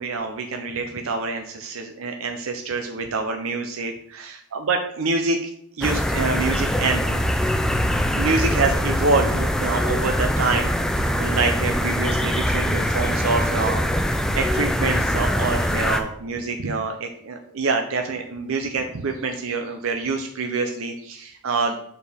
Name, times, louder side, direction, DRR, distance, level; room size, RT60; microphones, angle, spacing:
voice 1, 0.0-7.2 8.2-13.8 14.3-21.8, right 4 dB, 75° right, 4 dB, 0.6 m, -26 dB
sound 1, 5.8-16.0, equal, 5° left, 0.3 m, -23 dB
6.9 x 4.6 x 3.4 m, 0.69 s
head